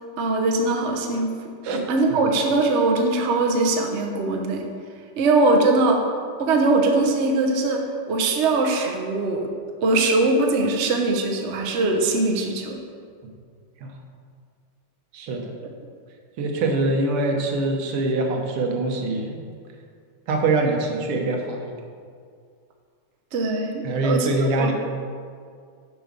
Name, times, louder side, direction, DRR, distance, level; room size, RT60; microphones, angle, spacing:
voice 1, 0.2-1.3 1.9-4.6 5.2-6.0 6.4-9.4 9.8-12.8 23.3-24.3 24.6-24.7, right 2 dB, 55° right, 1 dB, 0.8 m, -21 dB
voice 2, 1.6-2.2 13.8-13.9 15.1-15.4 16.4-19.4 20.3-21.7 23.8-24.7, right 2 dB, 85° right, 2 dB, 2.0 m, -24 dB
7.7 x 5.1 x 6.6 m, 2.1 s
omnidirectional pair, 2.4 m